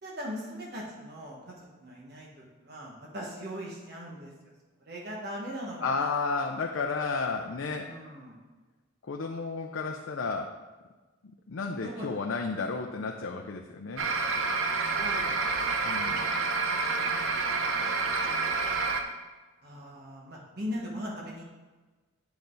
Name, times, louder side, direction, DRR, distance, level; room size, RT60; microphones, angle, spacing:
voice 1, 0.0-4.3 4.8-6.6 7.8-8.4 11.8-12.2 15.0-15.5 16.8-17.1 19.6-21.4, equal, 50° right, -4 dB, 1.6 m, -40 dB
voice 2, 5.8-7.9 9.0-10.5 11.5-14.1 15.8-16.2, left 4 dB, 70° left, 2 dB, 0.5 m, -32 dB
sound 1, 14.0-19.0, right 4 dB, 70° right, 0.8 m, -28 dB
8.5 x 5.9 x 4.0 m, 1.3 s
head